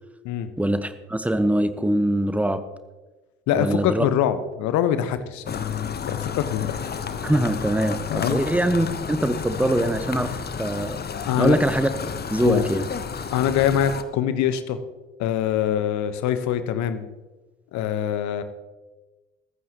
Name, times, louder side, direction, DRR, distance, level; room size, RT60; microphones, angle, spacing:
voice 1, 0.6-2.6 3.5-4.1 7.2-10.3 10.6-11.9 12.3-12.8, right 1 dB, 5° right, 10 dB, 1.2 m, -23 dB
voice 2, 3.5-5.7 6.0-6.8 8.1-8.4 11.1-11.6 12.4-12.7 13.3-14.8 15.2-17.1 17.7-18.4, left 10 dB, 55° left, 11 dB, 1.2 m, -24 dB
sound 1, 5.5-14.0, left 6 dB, 30° left, 1.2 m, -31 dB
21.0 x 15.0 x 3.0 m, 1.2 s
figure-of-eight pair, 50°, 33 cm